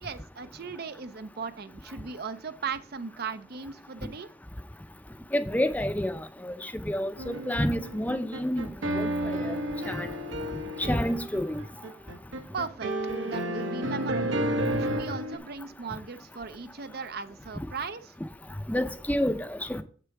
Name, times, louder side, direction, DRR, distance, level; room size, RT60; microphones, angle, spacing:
voice 1, 0.0-4.3 12.5-12.9 13.2-14.5 14.8-18.1, right 5 dB, 50° right, 0.6 m, -37 dB
voice 2, 5.3-8.7 8.9-9.6 9.9-10.1 10.8-11.6 18.7-19.8, left 1 dB, 10° left, 0.6 m, -29 dB
sound 1, 7.2-15.4, right 1 dB, 75° right, 1.3 m, -31 dB
8.0 x 6.8 x 4.7 m
head